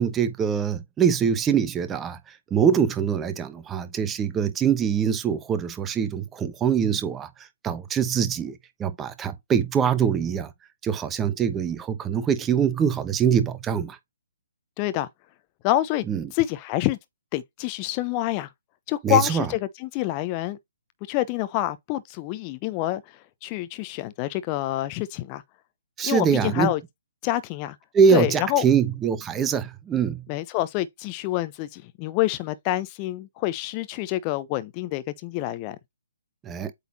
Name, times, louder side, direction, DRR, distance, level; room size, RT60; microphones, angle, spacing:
voice 1, 0.0-10.5 10.8-14.0 16.1-16.3 19.0-19.5 26.0-26.7 27.9-30.2 36.4-36.7, right 7 dB, 15° right, 0.9 m, -23 dB
voice 2, 14.8-15.1 15.6-16.1 16.3-17.0 17.3-18.5 18.9-20.6 21.1-25.4 26.0-26.8 27.2-27.8 28.1-28.7 30.3-35.8, left 14 dB, 25° left, 0.8 m, -27 dB
8.2 x 4.0 x 2.8 m
figure-of-eight pair, 135°, 0 cm